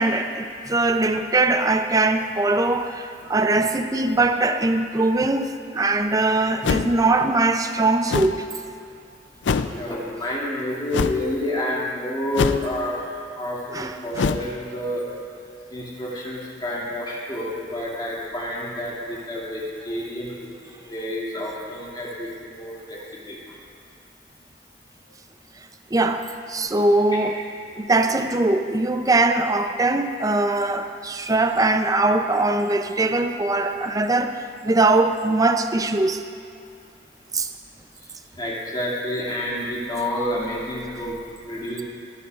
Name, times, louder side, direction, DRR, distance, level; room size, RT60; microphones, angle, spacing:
voice 1, 0.0-8.4 13.7-14.3 25.9-27.4 27.8-34.4 34.6-36.2 37.3-37.5, right 2 dB, 20° right, 7 dB, 0.5 m, -21 dB
sound 1, 6.6-7.1 8.1-8.4 9.4-9.8 10.9-11.2 12.3-12.8 14.1-14.5, left 5 dB, 75° left, 0.4 m, -23 dB
voice 2, 9.7-13.1 13.3-15.0 15.7-20.3 20.6-23.6 28.1-28.2 38.0-41.8, left 1 dB, 25° left, -6 dB, 2.4 m, -29 dB
24.5 x 9.8 x 2.5 m, 2.5 s
head